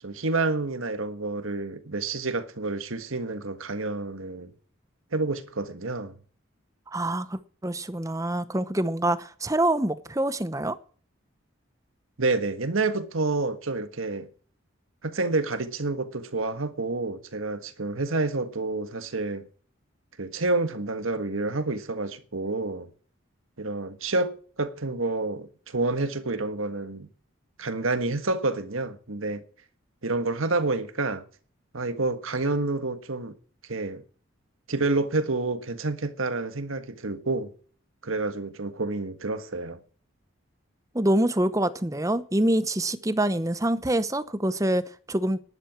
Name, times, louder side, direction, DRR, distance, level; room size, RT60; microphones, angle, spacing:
voice 1, 0.0-4.5 5.1-6.1 12.2-14.3 15.0-19.5 20.2-22.9 23.6-27.1 27.6-29.4 30.0-31.2 31.7-33.3 33.7-34.0 34.7-37.5 38.0-39.8, right 3 dB, 80° right, 1.5 m, -28 dB
voice 2, 6.9-10.8 40.9-45.4, right 1 dB, 15° right, 0.8 m, -26 dB
11.5 x 11.0 x 6.0 m
head